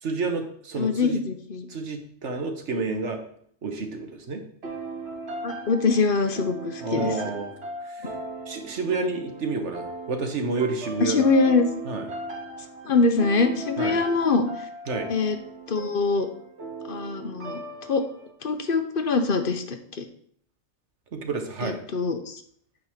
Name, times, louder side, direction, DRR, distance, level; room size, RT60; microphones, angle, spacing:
voice 1, 0.0-1.2 1.7-3.2 3.6-4.4 6.8-7.5 7.8-8.1 8.5-11.2 11.8-12.1 13.8-14.0 14.9-15.1 21.1-21.8, right 3 dB, 85° right, 5 dB, 1.6 m, -30 dB
voice 2, 0.7-1.7 5.4-7.2 11.0-11.7 12.8-14.7 15.1-15.4 15.7-16.3 16.9-17.6 17.9-18.0 18.4-20.0 21.6-22.4, left 4 dB, 55° left, 7 dB, 1.0 m, -23 dB
sound 1, 4.6-18.3, right 2 dB, 70° right, 1.6 m, -37 dB
9.3 x 4.0 x 7.2 m, 0.63 s
omnidirectional pair, 1.2 m